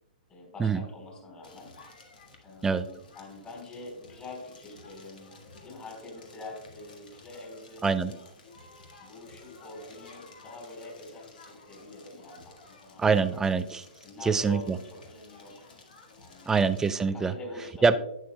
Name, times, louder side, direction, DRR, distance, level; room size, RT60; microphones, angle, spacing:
voice 1, 0.3-1.7 2.4-5.4 5.6-8.2 9.0-13.0 13.3-13.4 14.0-15.7 16.2-16.5 17.1-18.0, left 2 dB, 20° left, 0 dB, 3.4 m, -45 dB
Crackle, 1.4-16.9, left 3 dB, 65° left, 1.8 m, -53 dB
voice 2, 13.0-13.9 14.2-14.8 16.5-17.3 17.8-18.0, right 5 dB, 10° right, 12 dB, 0.4 m, -24 dB
11.0 x 8.8 x 2.2 m, 0.83 s
figure-of-eight pair, 115°, 5 cm